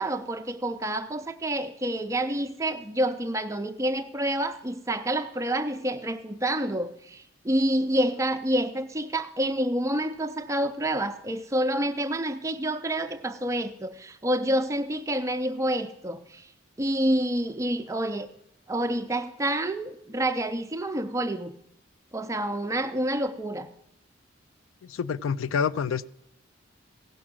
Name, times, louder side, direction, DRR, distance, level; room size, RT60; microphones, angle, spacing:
voice 1, 0.0-16.5 16.8-18.3 18.7-21.5 22.1-23.7, right 1 dB, 15° right, 0.5 m, -28 dB
voice 2, 24.8-26.1, left 6 dB, 80° left, 0.4 m, -27 dB
16.0 x 6.1 x 6.2 m
head